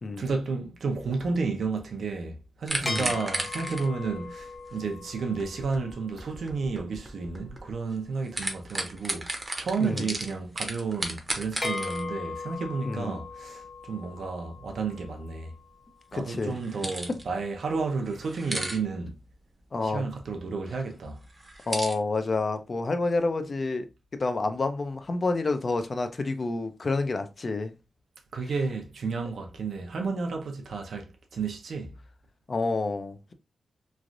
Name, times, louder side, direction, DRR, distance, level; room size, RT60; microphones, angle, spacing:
voice 1, 0.2-15.5 16.1-19.2 19.8-21.2 28.3-31.9, right 4 dB, 75° right, 0.6 m, -32 dB
sound 1, 2.7-8.0 8.2-12.0 16.3-17.3 17.6-17.7 18.1-18.8 21.3-21.9, right 1 dB, 25° right, 0.7 m, -34 dB
voice 2, 2.8-3.1 9.8-10.1 12.8-13.2 16.1-16.6 17.1-17.2 19.7-20.0 21.7-23.9 24.2-27.7 32.5-33.3, left 3 dB, 40° left, 0.4 m, -29 dB
sound 2, 2.9-6.5 11.6-16.0, left 3 dB, 25° left, 0.8 m, -39 dB
3.2 x 2.4 x 2.5 m
wide cardioid pair, 115°, 0 cm